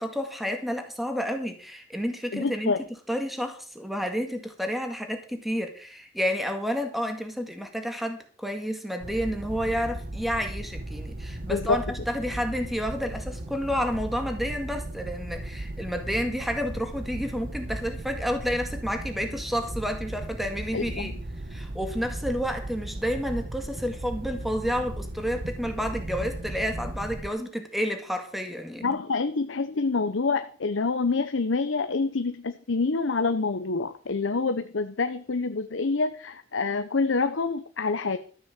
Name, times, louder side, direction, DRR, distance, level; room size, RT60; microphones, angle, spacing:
voice 1, 0.0-2.7 3.1-21.1 21.5-29.0, equal, ahead, 5 dB, 1.9 m, -30 dB
voice 2, 2.3-2.8 11.5-11.8 20.7-21.1 28.8-38.2, left 4 dB, 70° left, 9 dB, 0.8 m, -27 dB
sound 1, 9.0-27.3, right 1 dB, 50° right, 1.0 m, -36 dB
13.5 x 6.2 x 7.5 m, 0.42 s
head